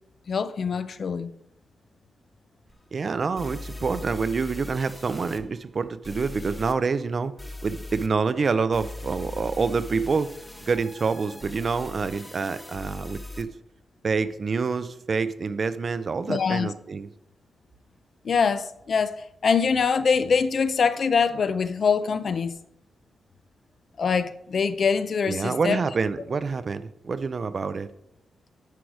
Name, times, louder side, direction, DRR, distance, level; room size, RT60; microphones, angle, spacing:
voice 1, 0.3-1.3 16.3-16.7 18.2-22.5 24.0-25.8, left 5 dB, 45° left, 0.5 m, -24 dB
sound 1, 2.7-2.8 3.4-5.4 6.0-6.7 7.4-8.1 8.7-13.4, left 2 dB, 10° left, 0.6 m, -40 dB
voice 2, 2.9-7.3 7.6-10.3 10.7-13.5 14.0-17.1 25.3-27.9, right 4 dB, 35° right, 0.4 m, -27 dB
10.5 x 4.7 x 4.8 m
wide cardioid pair, 165°, 0 cm